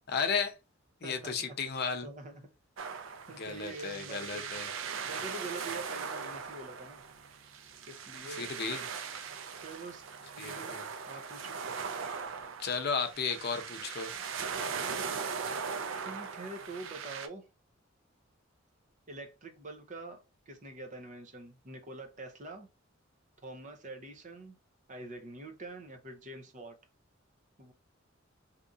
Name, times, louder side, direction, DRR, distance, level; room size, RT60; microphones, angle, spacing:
voice 1, 0.1-0.5 1.0-2.1 3.4-4.7 8.4-8.8 10.4-10.9 12.6-14.1, left 5 dB, 55° left, 0.6 m, -34 dB
voice 2, 1.0-1.6 2.0-2.4 2.9-4.6 5.1-7.0 7.9-8.5 9.6-10.0 10.4-10.8 11.1-11.6 16.0-17.5 19.1-22.7 23.4-24.6 24.9-26.8 27.6-27.7, right 2 dB, 40° right, 0.7 m, -45 dB
sound 1, 2.8-17.3, right 6 dB, 75° right, 0.5 m, -39 dB
2.8 x 2.5 x 3.7 m
head